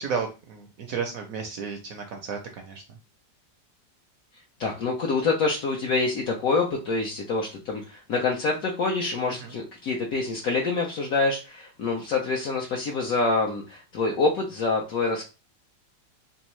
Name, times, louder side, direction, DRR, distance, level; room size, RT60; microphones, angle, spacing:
voice 1, 0.0-3.0 9.4-9.5, right 5 dB, 70° right, 4 dB, 0.8 m, -33 dB
voice 2, 4.6-15.2, left 3 dB, 65° left, 0 dB, 1.0 m, -26 dB
3.5 x 3.1 x 3.0 m, 0.31 s
omnidirectional pair, 2.0 m